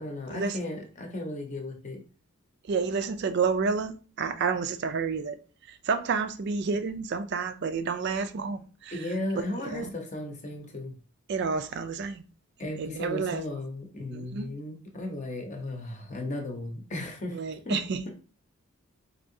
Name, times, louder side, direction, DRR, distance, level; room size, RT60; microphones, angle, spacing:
voice 1, 0.0-2.0 8.9-10.9 12.6-17.4 17.6-17.8, left 1 dB, 35° left, 0.7 m, -35 dB
voice 2, 2.6-5.4 5.6-9.1 9.6-9.9 11.3-12.2 12.6-13.4 14.1-14.5 17.3-18.0, right 5 dB, 50° right, 0.3 m, -30 dB
4.4 x 2.7 x 2.6 m
head